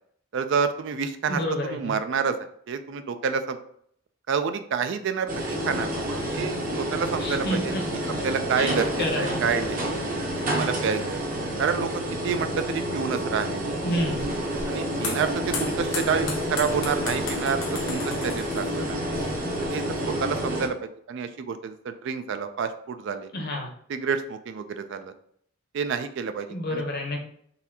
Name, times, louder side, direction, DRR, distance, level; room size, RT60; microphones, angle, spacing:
voice 1, 0.3-2.4 2.7-3.6 4.3-7.7 8.2-9.8 10.5-11.2 11.6-13.8 14.6-17.6 17.9-19.0 19.7-20.8 21.1-23.3 23.9-25.1 25.7-26.8, right 6 dB, 60° right, 9 dB, 0.4 m, -28 dB
voice 2, 1.3-1.9 7.2-7.8 8.6-9.4 13.8-14.2 23.3-23.7 26.5-27.3, left 1 dB, 50° left, 1 dB, 0.8 m, -29 dB
sound 1, 5.3-20.7, equal, 45° right, 0.8 m, -29 dB
sound 2, 13.9-19.7, left 4 dB, 75° left, 0.9 m, -36 dB
4.0 x 2.7 x 2.8 m, 0.65 s
head